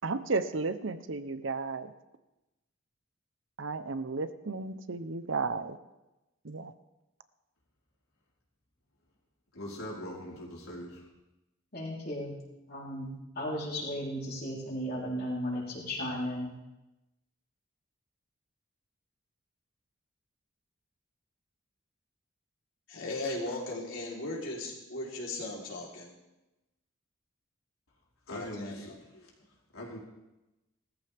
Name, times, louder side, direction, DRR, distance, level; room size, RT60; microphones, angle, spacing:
voice 1, 0.0-1.9 3.6-5.8 6.4-6.7, right 3 dB, 65° right, 11 dB, 0.8 m, -33 dB
voice 2, 9.5-11.1 28.3-28.9 29.2-29.3 29.7-30.0, equal, 90° left, -4 dB, 4.6 m, -41 dB
voice 3, 11.7-12.3 12.7-16.5, equal, 50° left, -5 dB, 3.8 m, -35 dB
voice 4, 22.9-26.1 28.3-29.3, left 2 dB, 70° left, -3 dB, 3.9 m, -38 dB
19.0 x 14.0 x 3.5 m, 0.98 s
head